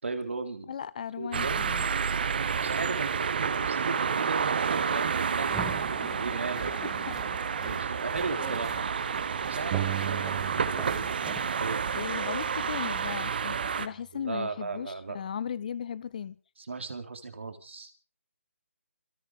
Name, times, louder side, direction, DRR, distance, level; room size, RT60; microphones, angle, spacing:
voice 1, 0.0-0.7 1.2-1.6 2.6-6.7 7.7-8.9 9.5-11.1 11.6-11.8 14.2-15.2 16.6-17.9, right 3 dB, 55° right, 3.7 m, -36 dB
voice 2, 0.7-1.9 6.8-7.2 11.9-16.4, left 8 dB, 35° left, 0.7 m, -37 dB
sound 1, 1.3-13.9, right 6 dB, 40° right, 1.2 m, -30 dB
sound 2, 5.4-11.4, right 5 dB, 5° right, 2.2 m, -44 dB
sound 3, 9.7-11.2 11.5-13.2, right 14 dB, 25° right, 1.0 m, -37 dB
26.5 x 9.1 x 5.0 m
figure-of-eight pair, 145°, 8 cm